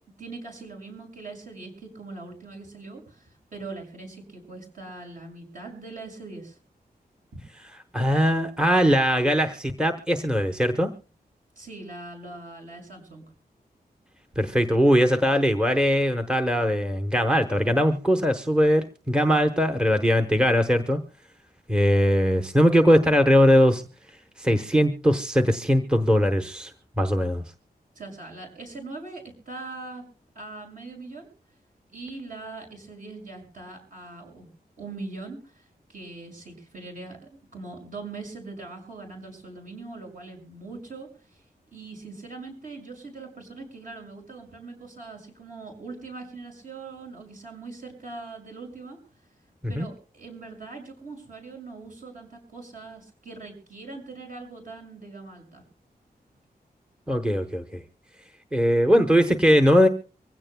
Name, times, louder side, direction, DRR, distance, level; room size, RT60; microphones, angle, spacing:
voice 1, 0.2-6.6 7.3-7.4 11.6-13.2 27.9-30.0 30.3-31.3 31.9-34.5 34.8-41.4 41.7-49.0 49.7-55.6, right 3 dB, 55° right, 2 dB, 6.2 m, -41 dB
voice 2, 7.9-10.9 14.4-21.0 21.7-23.8 24.4-26.7 27.0-27.4 49.6-49.9 57.1-57.8 58.5-59.9, equal, 5° right, 7 dB, 0.9 m, -20 dB
24.5 x 16.0 x 2.2 m, 0.35 s
wide cardioid pair, 160°, 16 cm